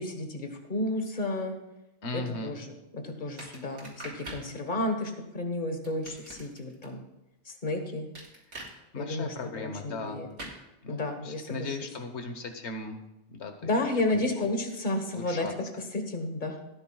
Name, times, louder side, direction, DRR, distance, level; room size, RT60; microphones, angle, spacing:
voice 1, 0.0-1.5 2.1-7.0 7.4-8.1 8.9-10.3 10.9-11.8 13.6-15.5 15.9-16.6, left 2 dB, 40° left, 5 dB, 1.5 m, -32 dB
voice 2, 2.0-2.5 8.9-10.3 10.8-13.0 13.3-13.7 14.1-14.2 15.1-15.5, left 3 dB, 70° left, 6 dB, 1.4 m, -37 dB
sound 1, 3.4-4.5 5.8-6.9 8.1-8.7 10.4-10.6, right 2 dB, 80° right, 2.6 m, -42 dB
17.0 x 9.7 x 2.4 m, 0.94 s
omnidirectional pair, 1.2 m